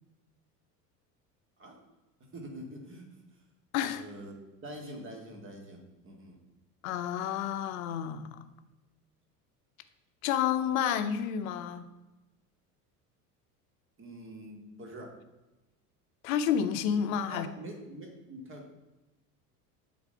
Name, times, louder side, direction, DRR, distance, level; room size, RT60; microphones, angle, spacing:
voice 1, 2.3-3.4 3.8-6.4 14.0-15.1 17.3-18.7, right 1 dB, 25° right, 2 dB, 2.2 m, -45 dB
voice 2, 6.8-8.4 10.2-11.8 16.2-17.5, left 8 dB, 60° left, 10 dB, 0.9 m, -30 dB
8.2 x 4.3 x 6.7 m, 1.1 s
figure-of-eight pair, 70°, 47 cm